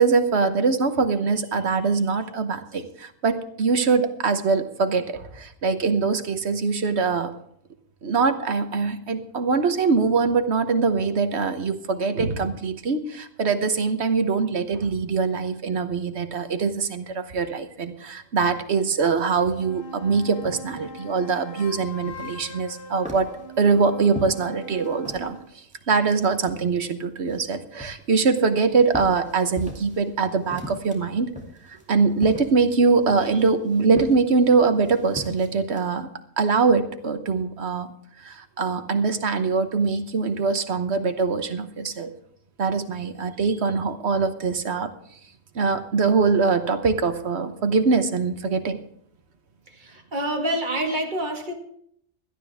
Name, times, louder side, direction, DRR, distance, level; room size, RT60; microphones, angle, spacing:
voice 1, 0.0-7.3 8.0-23.3 23.6-31.3 31.7-36.1 36.4-37.9 38.2-42.1 42.6-44.9 45.5-48.8, right 4 dB, 55° right, 9 dB, 1.2 m, -23 dB
sound 1, 19.3-25.5, equal, 45° left, 1.5 m, -41 dB
sound 2, 22.6-25.4 25.7-26.8 27.3-30.1 30.4-35.8, equal, 5° right, 2.3 m, -39 dB
voice 2, 49.7-51.5, right 1 dB, 35° right, 2 dB, 2.0 m, -27 dB
17.0 x 12.0 x 3.5 m, 0.68 s
omnidirectional pair, 1.4 m